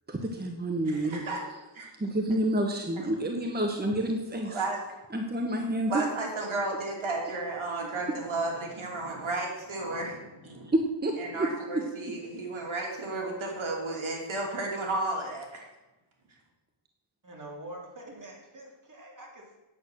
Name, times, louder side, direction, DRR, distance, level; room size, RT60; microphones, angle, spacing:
voice 1, 0.1-1.2 2.0-4.6 5.1-6.0 10.6-11.5, right 1 dB, 20° right, 3 dB, 1.2 m, -29 dB
voice 2, 0.9-1.4 1.7-1.9 4.4-4.8 5.9-10.7 11.2-15.6, right 2 dB, 70° right, -1 dB, 2.8 m, -33 dB
voice 3, 17.2-19.6, right 1 dB, 40° right, -1 dB, 3.1 m, -45 dB
9.2 x 8.1 x 6.3 m, 1.1 s
cardioid pair, 80°, 50 cm